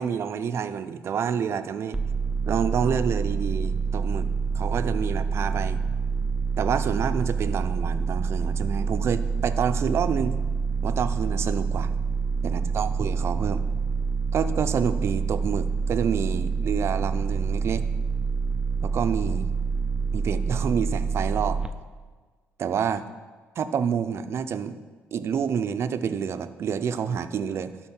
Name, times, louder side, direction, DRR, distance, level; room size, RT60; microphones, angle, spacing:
voice 1, 0.0-2.0 2.5-4.3 4.5-5.8 6.6-10.4 10.8-11.9 12.4-13.6 14.3-17.8 18.8-19.5 20.1-21.6 22.6-23.0 23.6-24.8 25.1-27.7, right 7 dB, 55° right, 11 dB, 0.6 m, -28 dB
sound 1, 1.9-21.7, right 5 dB, 15° right, 0.5 m, -27 dB
12.5 x 4.2 x 5.7 m, 1.4 s
supercardioid pair, 75°, 5 cm